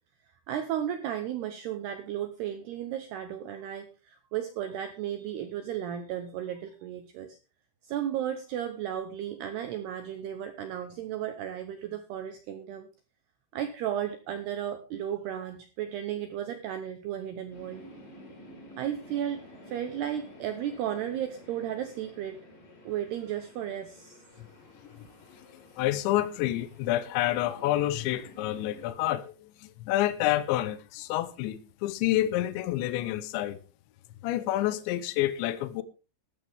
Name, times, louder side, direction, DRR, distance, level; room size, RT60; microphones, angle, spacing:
voice 1, 0.5-7.4 7.8-12.9 13.5-17.9 18.8-22.4 22.9-24.2, right 10 dB, 80° right, 2.4 m, -34 dB
sound 1, 17.5-28.9, left 1 dB, 60° left, 8.0 m, -51 dB
voice 2, 25.4-33.6 34.2-35.8, left 14 dB, 80° left, 2.8 m, -29 dB
15.0 x 13.0 x 3.5 m
omnidirectional pair, 6.0 m